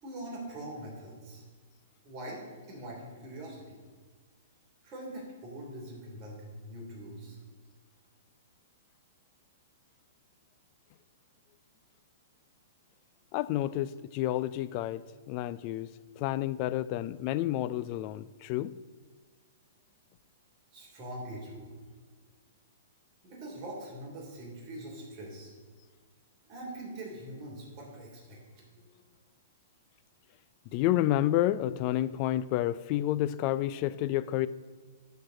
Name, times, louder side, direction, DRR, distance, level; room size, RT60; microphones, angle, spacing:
voice 1, 0.0-1.4 2.0-3.8 4.8-7.4 20.7-21.7 23.2-25.5 26.5-28.4, right 1 dB, 35° right, 3.2 m, -43 dB
voice 2, 13.3-18.8 30.7-34.5, left 14 dB, 40° left, 0.4 m, -30 dB
11.5 x 4.6 x 6.4 m
hypercardioid pair, 145°, 0 cm